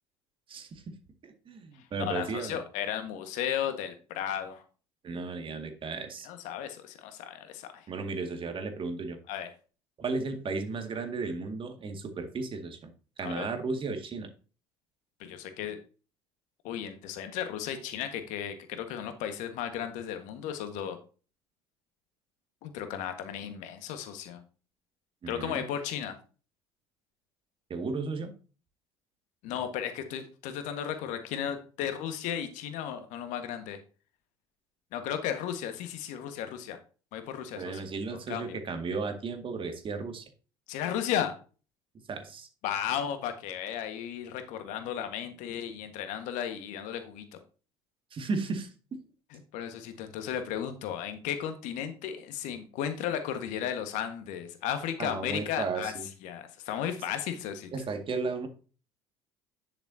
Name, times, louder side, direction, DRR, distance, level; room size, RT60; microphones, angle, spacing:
voice 1, 0.5-0.9 1.2-2.6 5.0-6.3 7.9-9.2 10.0-12.9 13.2-14.3 25.2-25.7 27.7-28.3 37.6-40.3 42.1-42.5 48.1-49.0 55.0-56.1 57.7-58.5, right 4 dB, 40° right, 6 dB, 2.1 m, -34 dB
voice 2, 2.0-4.6 6.2-7.9 9.3-9.5 13.2-13.5 15.2-15.8 16.6-21.0 22.6-24.4 25.3-26.2 29.4-33.8 34.9-36.8 37.1-37.8 38.1-38.6 40.7-41.3 42.6-47.4 49.3-55.9 56.2-57.7, left 9 dB, 65° left, 8 dB, 1.6 m, -34 dB
10.5 x 6.9 x 2.8 m, 0.36 s
hypercardioid pair, 60°, 14 cm